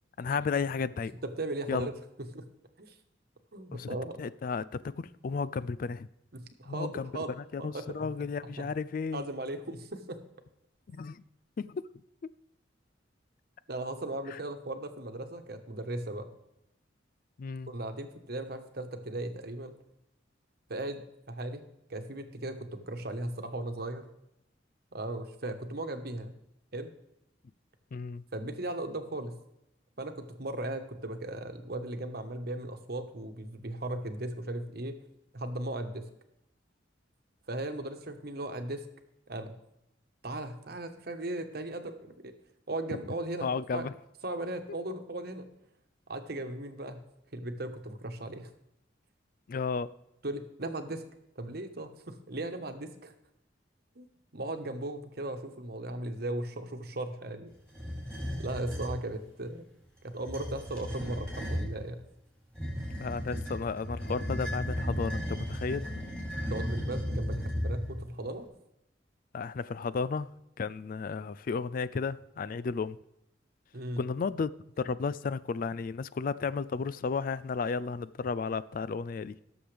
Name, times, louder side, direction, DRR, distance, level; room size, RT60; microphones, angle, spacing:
voice 1, 0.2-1.1 1.7-1.9 3.7-4.8 5.2-6.1 6.7-7.1 7.5-9.2 10.9-11.2 11.6-11.8 17.4-17.7 27.9-28.2 43.4-43.9 49.5-49.9 63.0-65.8 69.3-70.3 70.6-73.0 74.0-74.5 74.8-79.3, left 5 dB, 45° left, 0.3 m, -33 dB
voice 2, 1.3-2.0 2.3-2.4 2.8-2.9 3.5-4.2 6.3-7.3 7.6-8.7 9.1-10.2 13.7-16.3 17.7-19.7 20.7-24.1 24.9-26.3 26.7-26.9 28.3-29.3 30.0-35.0 35.3-36.0 37.5-38.8 39.3-39.5 40.2-42.3 42.7-43.9 44.2-45.4 46.1-47.0 47.3-48.5 50.2-51.0 51.3-53.1 54.0-54.1 54.3-57.5 58.4-59.7 60.0-62.0 66.3-68.5 73.7-74.0, right 1 dB, 55° right, 1.2 m, -37 dB
sound 1, 57.7-59.0 60.1-61.8 62.5-68.1, equal, 5° left, 4.4 m, -35 dB
17.5 x 7.1 x 3.4 m
head